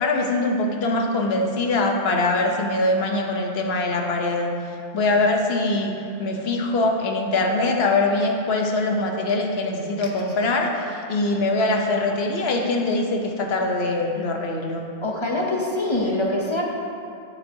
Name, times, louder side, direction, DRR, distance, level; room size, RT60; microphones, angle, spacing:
voice 1, 0.0-4.5 4.9-5.9 6.2-14.9, left 2 dB, 65° left, 2 dB, 1.0 m, -23 dB
voice 2, 15.0-16.6, left 2 dB, 30° left, -2 dB, 0.7 m, -24 dB
9.0 x 7.2 x 2.7 m, 2.5 s
omnidirectional pair, 1.2 m